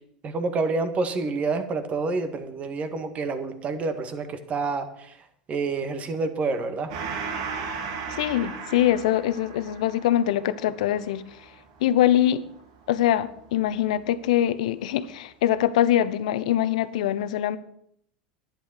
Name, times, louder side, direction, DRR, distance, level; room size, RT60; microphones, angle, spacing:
voice 1, 0.2-5.1 5.5-6.9, right 3 dB, 35° right, 8 dB, 1.9 m, -28 dB
Gong, 6.9-13.9, right 5 dB, 70° right, 2.2 m, -37 dB
voice 2, 8.1-11.5 11.8-12.4 12.9-17.6, left 11 dB, 75° left, 15 dB, 0.8 m, -23 dB
11.0 x 10.0 x 6.4 m, 0.71 s
hypercardioid pair, 90°, 4 cm